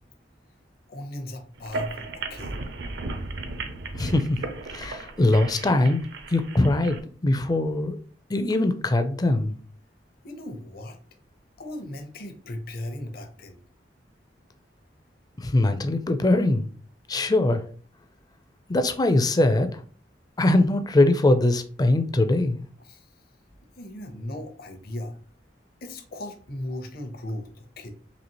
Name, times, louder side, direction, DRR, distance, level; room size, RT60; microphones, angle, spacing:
voice 1, 0.9-2.6 10.2-11.0 11.6-13.6 22.8-23.1 23.7-25.2 25.8-27.9, left 1 dB, 60° left, 0.8 m, -37 dB
sound 1, 1.6-7.0, right 3 dB, 70° right, 0.6 m, -35 dB
voice 2, 3.9-4.3 4.7-6.0 6.3-8.0 8.3-9.5 15.4-16.7 17.1-17.6 18.7-19.8 20.4-22.6, left 2 dB, 20° left, 0.4 m, -22 dB
4.1 x 2.8 x 2.9 m
head